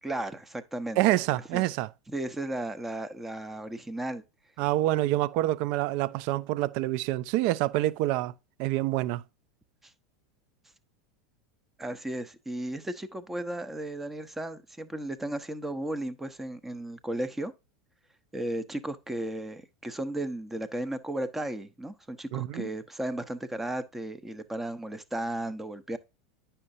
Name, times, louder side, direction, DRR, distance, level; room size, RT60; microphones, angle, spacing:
voice 1, 0.0-1.0 1.3-1.6 2.1-4.2 11.8-17.5 18.3-26.0, right 1 dB, 10° right, 0.9 m, -35 dB
voice 2, 1.0-1.9 4.6-8.3 8.6-9.2 22.3-22.7, right 16 dB, 55° right, 0.4 m, -27 dB
9.6 x 5.7 x 2.7 m
hypercardioid pair, 85°, 2 cm